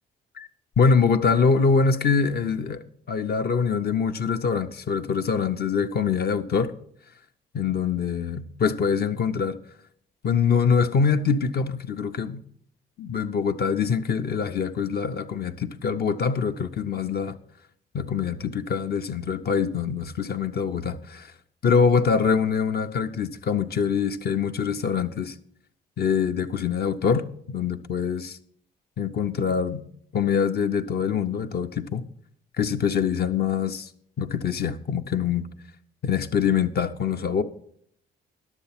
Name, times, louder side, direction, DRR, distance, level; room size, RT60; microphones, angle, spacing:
voice 1, 0.8-6.7 7.5-9.6 10.2-12.4 13.0-17.4 17.9-21.3 21.6-25.4 26.0-28.4 29.0-29.8 30.1-32.0 32.6-33.9 34.2-35.5 36.0-37.4, left 6 dB, 55° left, 0.7 m, -24 dB
11.0 x 7.2 x 5.8 m
cardioid pair, 90°, 20 cm